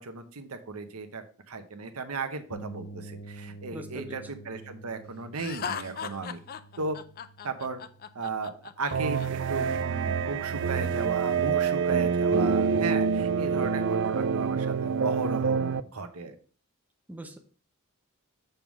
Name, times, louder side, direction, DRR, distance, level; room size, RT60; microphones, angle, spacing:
voice 1, 0.0-6.4 6.8-7.0 7.4-7.8 8.1-16.4, right 3 dB, 80° right, 8 dB, 1.0 m, -35 dB
sound 1, 2.5-10.2, right 2 dB, 80° left, 0.9 m, -48 dB
voice 2, 3.7-4.2 17.1-17.4, right 1 dB, 5° right, 4 dB, 0.7 m, -41 dB
Laughter, 5.4-9.3, left 7 dB, 45° left, 0.4 m, -38 dB
sound 2, 8.9-15.8, right 6 dB, 55° right, 0.4 m, -26 dB
6.7 x 3.7 x 6.0 m, 0.40 s
head